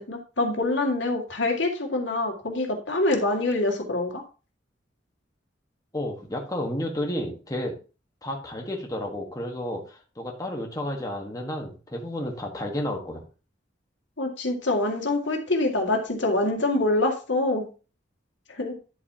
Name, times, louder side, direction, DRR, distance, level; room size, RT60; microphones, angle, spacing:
voice 1, 0.0-4.2 14.2-17.7 18.5-18.7, left 2 dB, 80° left, 2 dB, 2.2 m, -25 dB
voice 2, 5.9-7.8 8.2-13.2, left 1 dB, 20° left, 1 dB, 1.4 m, -31 dB
10.0 x 8.1 x 2.9 m, 0.34 s
head